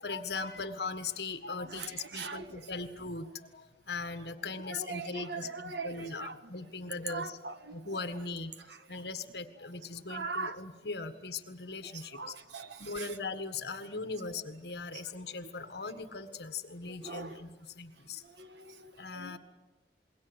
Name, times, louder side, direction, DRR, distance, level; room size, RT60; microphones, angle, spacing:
voice 1, 0.0-7.4 7.7-8.5 8.9-18.2 18.9-19.4, left 4 dB, 65° left, 9 dB, 1.7 m, -39 dB
voice 2, 1.6-2.6 4.7-6.4 7.1-8.0 10.1-10.6 11.9-13.2 17.0-17.4 18.4-18.9 19.1-19.4, right 4 dB, 75° right, 10 dB, 1.6 m, -41 dB
27.5 x 21.5 x 8.2 m, 1.2 s
head